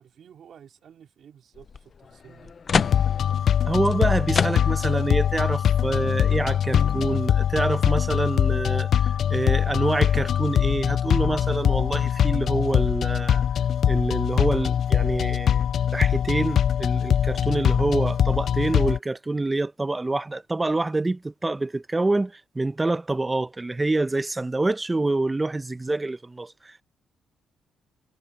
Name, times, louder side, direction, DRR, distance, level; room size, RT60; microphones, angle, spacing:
voice 1, 0.0-2.5, right 8 dB, 60° right, 3.4 m, -51 dB
sound 1, 1.6-1.8 2.3-5.0 5.5-5.6 6.0-7.2, left 6 dB, 40° left, 0.8 m, -28 dB
sound 2, 2.7-19.0, left 9 dB, 60° left, 0.4 m, -22 dB
voice 2, 3.6-13.4 13.9-15.6 15.9-26.8, right 2 dB, 15° right, 1.0 m, -26 dB
cardioid pair, 90°, 0 cm